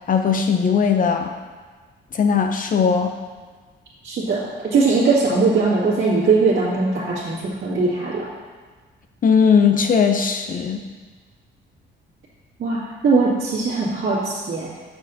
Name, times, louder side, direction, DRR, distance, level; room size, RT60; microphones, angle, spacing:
voice 1, 0.1-1.3 2.1-3.1 9.2-10.8, left 6 dB, 45° left, 6 dB, 0.5 m, -18 dB
voice 2, 4.0-8.3 12.6-14.8, right 4 dB, 65° right, -10 dB, 2.0 m, -20 dB
7.6 x 6.4 x 2.7 m, 1.4 s
cardioid pair, 90°, 20 cm